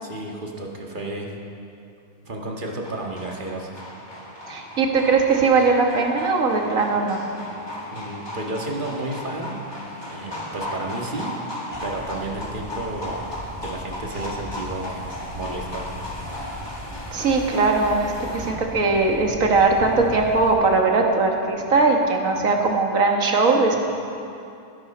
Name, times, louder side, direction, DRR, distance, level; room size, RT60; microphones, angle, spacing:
voice 1, 0.0-1.3 2.2-3.8 7.9-9.6 10.1-11.4 11.8-13.3 13.6-15.0 15.3-15.9, right 2 dB, 35° right, -1 dB, 1.7 m, -32 dB
sound 1, 2.8-18.5, left 1 dB, 15° left, 1.8 m, -36 dB
voice 2, 4.5-7.3 17.1-23.8, right 3 dB, 70° right, 1 dB, 1.9 m, -20 dB
sound 2, 11.7-20.6, equal, 5° right, 2.9 m, -38 dB
19.5 x 11.0 x 4.3 m, 2.6 s
omnidirectional pair, 1.5 m